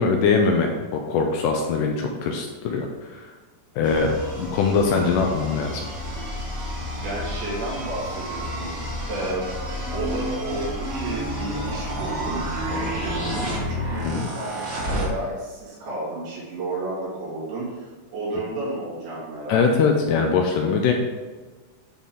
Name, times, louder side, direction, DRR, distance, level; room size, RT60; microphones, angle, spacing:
voice 1, 0.0-2.9 3.1-3.2 3.8-5.9 14.0-14.3 19.5-20.9, left 5 dB, 80° left, 2 dB, 2.0 m, -22 dB
sound 1, 3.8-15.1, equal, 45° right, 1.0 m, -30 dB
voice 2, 7.0-8.7 9.1-9.5 9.9-19.9, right 2 dB, 90° right, -7 dB, 4.2 m, -32 dB
10.5 x 4.3 x 3.7 m, 1.4 s
omnidirectional pair, 4.2 m